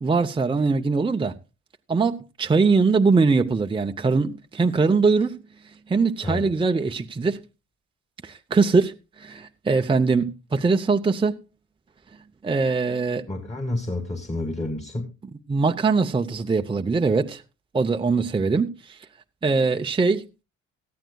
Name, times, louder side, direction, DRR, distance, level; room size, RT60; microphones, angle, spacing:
voice 1, 0.0-1.3 1.9-5.4 5.9-7.4 8.2-11.4 12.4-13.3 15.5-17.4 17.7-19.0 19.4-20.2, right 4 dB, 15° right, 0.6 m, -22 dB
voice 2, 13.3-15.1, left 2 dB, 20° left, 2.0 m, -29 dB
18.5 x 13.0 x 2.3 m
cardioid pair, 90°, 30 cm